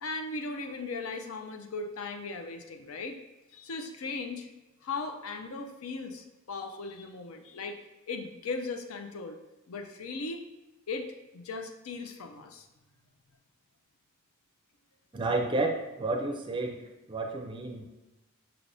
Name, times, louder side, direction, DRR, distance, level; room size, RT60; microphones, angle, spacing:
voice 1, 0.0-3.2 3.5-4.5 4.8-7.8 8.1-9.4 9.7-10.4 10.9-11.1 11.3-12.7, left 3 dB, 75° left, 5 dB, 0.5 m, -37 dB
voice 2, 15.1-16.8 17.1-17.9, right 2 dB, 20° right, 2 dB, 0.5 m, -31 dB
5.8 x 3.3 x 2.6 m, 1.1 s
head